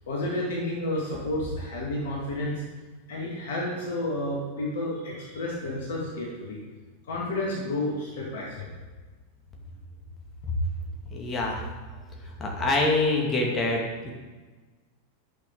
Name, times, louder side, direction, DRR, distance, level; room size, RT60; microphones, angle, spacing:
voice 1, 0.1-2.6 3.1-6.6 7.1-8.7, left 1 dB, 55° left, -3 dB, 2.2 m, -31 dB
voice 2, 11.1-11.6 12.2-14.1, left 2 dB, 20° left, -1 dB, 2.0 m, -26 dB
10.0 x 6.1 x 3.9 m, 1.3 s
figure-of-eight pair, 90°, 0 cm